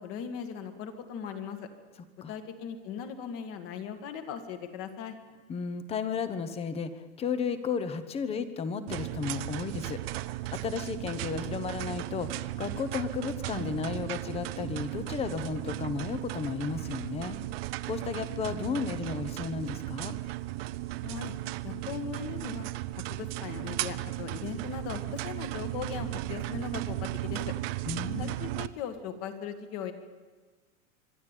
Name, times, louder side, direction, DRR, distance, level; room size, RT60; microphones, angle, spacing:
voice 1, 0.0-1.7 2.3-5.2 21.0-21.3 21.6-22.7 23.1-27.5 28.2-29.9, left 7 dB, 40° left, 8 dB, 1.9 m, -39 dB
voice 2, 5.5-10.0 10.5-17.4 17.9-20.2 27.9-28.3, left 5 dB, 15° left, 12 dB, 0.9 m, -33 dB
sound 1, 8.9-28.7, right 17 dB, 55° right, 0.7 m, -36 dB
25.0 x 11.5 x 9.1 m, 1.4 s
supercardioid pair, 165°, 36 cm